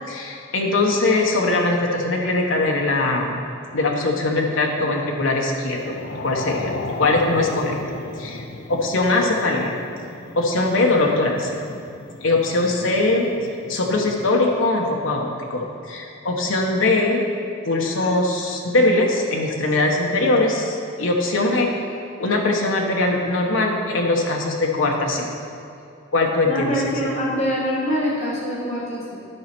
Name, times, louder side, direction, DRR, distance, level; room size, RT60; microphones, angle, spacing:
voice 1, 0.1-3.4 3.7-6.0 6.2-6.7 7.0-7.8 8.2-8.4 8.7-9.7 10.3-11.8 12.2-13.3 13.7-17.3 17.6-21.7 22.2-25.3 26.1-27.1, left 2 dB, 75° left, 0 dB, 1.0 m, -21 dB
sound 1, 5.6-14.4, left 2 dB, 55° left, 0.6 m, -35 dB
voice 2, 26.5-29.2, equal, 35° left, -6 dB, 1.4 m, -24 dB
11.0 x 4.3 x 5.9 m, 2.6 s
head